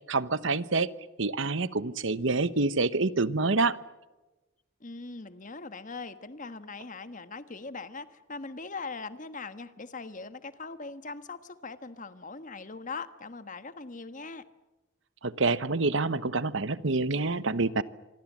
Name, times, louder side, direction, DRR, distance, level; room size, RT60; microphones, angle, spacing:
voice 1, 0.1-0.9 1.2-3.8 15.2-17.8, right 3 dB, 65° right, 15 dB, 1.0 m, -27 dB
voice 2, 4.8-14.4, left 4 dB, 40° left, 11 dB, 1.4 m, -41 dB
26.5 x 24.5 x 7.4 m, 1.1 s
head